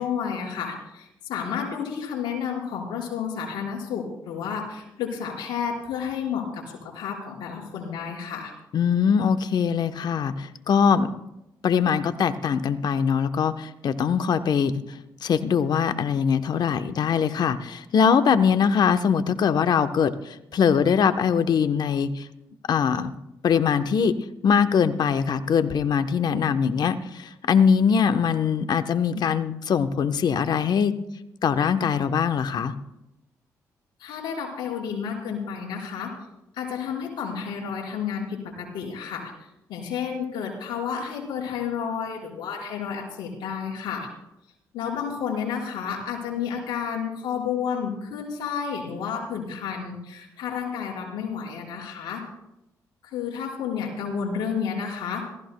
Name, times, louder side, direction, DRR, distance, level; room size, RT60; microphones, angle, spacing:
voice 1, 0.0-8.5 34.0-36.1 36.5-39.3 39.7-44.1 44.7-52.2 53.0-55.2, left 7 dB, 80° left, -2 dB, 4.7 m, -31 dB
voice 2, 8.7-11.1 11.6-14.8 15.2-22.3 22.7-23.1 23.4-24.2 24.4-31.0 31.4-32.7, left 7 dB, 65° left, 10 dB, 0.9 m, -22 dB
27.0 x 15.5 x 2.2 m, 0.88 s
supercardioid pair, 55°, 8 cm